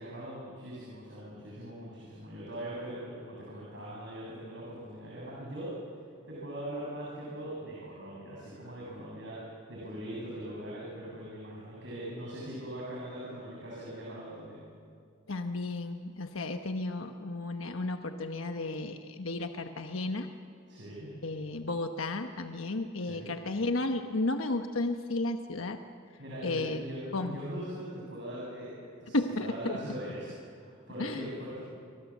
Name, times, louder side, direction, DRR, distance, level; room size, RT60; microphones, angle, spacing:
voice 1, 0.0-5.7 6.3-14.6 20.7-21.1 22.9-23.3 26.2-31.6, right 1 dB, 60° right, -5 dB, 7.8 m, -41 dB
voice 2, 15.3-20.3 21.2-25.8 26.4-26.8 27.1-27.4 29.1-29.8 31.0-31.3, left 2 dB, 80° left, 6 dB, 1.2 m, -33 dB
28.0 x 24.5 x 7.4 m, 2.2 s
head